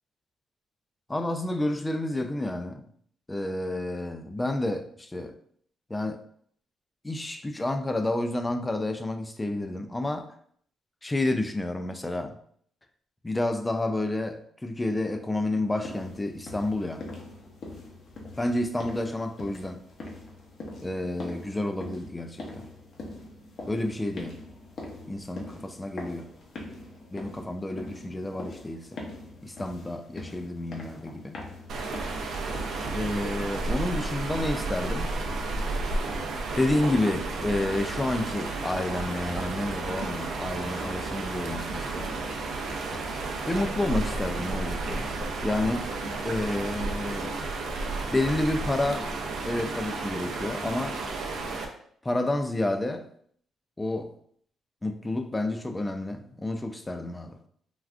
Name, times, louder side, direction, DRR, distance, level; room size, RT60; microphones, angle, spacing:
voice 1, 1.1-2.8 3.3-5.4 5.9-6.2 7.0-10.3 11.0-12.4 13.2-17.0 18.4-19.8 20.8-22.7 23.7-24.4 25.1-26.3 27.1-29.0 29.4-31.4 32.9-35.1 36.6-42.2 43.5-45.1 45.4-45.9 46.2-47.4 48.1-49.1 49.4-51.0 52.0-53.1 53.8-54.1 54.8-57.4, left 2 dB, 15° left, 0.3 m, -30 dB
sound 1, 15.8-33.1, left 2 dB, 55° left, 0.6 m, -43 dB
sound 2, 31.7-51.7, right 3 dB, 75° right, 0.5 m, -32 dB
3.5 x 2.3 x 2.4 m
cardioid pair, 95°, 0 cm